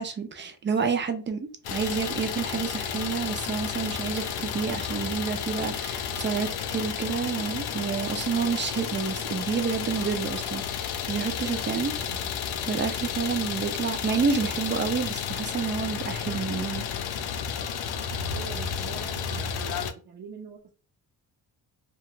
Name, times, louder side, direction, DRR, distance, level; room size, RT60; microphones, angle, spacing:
voice 1, 0.0-11.9 12.7-16.8, right 5 dB, 30° right, 0.4 m, -29 dB
Idling, 1.6-19.9, left 7 dB, 70° left, 0.5 m, -32 dB
voice 2, 11.9-12.3 18.3-20.7, right 6 dB, 60° right, 0.8 m, -44 dB
2.4 x 2.2 x 2.9 m
cardioid pair, 130°, 40 cm